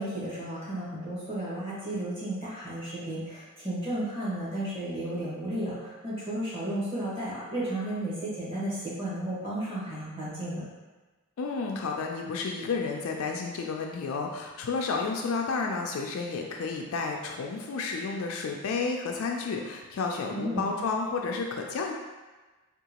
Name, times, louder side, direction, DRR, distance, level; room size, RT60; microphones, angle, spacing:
voice 1, 0.0-10.6 20.3-20.6, right 1 dB, 25° right, -9 dB, 1.2 m, -33 dB
voice 2, 11.4-21.9, left 4 dB, 65° left, 1 dB, 0.3 m, -31 dB
3.7 x 2.4 x 2.8 m, 1.2 s
head